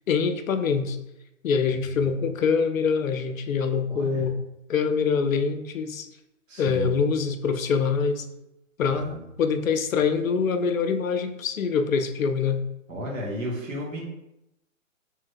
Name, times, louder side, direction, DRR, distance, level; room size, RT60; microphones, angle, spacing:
voice 1, 0.1-1.0 1.4-4.4 4.7-6.1 6.6-8.2 8.8-9.1 9.4-12.6, left 5 dB, 85° left, 8 dB, 0.5 m, -24 dB
voice 2, 3.9-4.3 6.5-6.9 8.9-9.2 12.9-14.0, equal, 75° right, -3 dB, 1.4 m, -33 dB
3.2 x 3.2 x 2.4 m, 0.89 s
hypercardioid pair, 130°, 39 cm